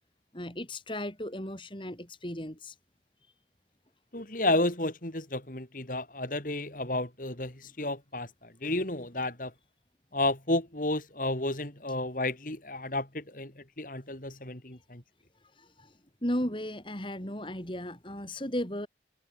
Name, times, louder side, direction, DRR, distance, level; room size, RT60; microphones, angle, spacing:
voice 1, 0.3-2.8 15.4-18.9, left 1 dB, 30° left, 5.0 m, -35 dB
voice 2, 4.1-9.5 10.1-15.0, left 2 dB, 50° left, 3.8 m, -32 dB
head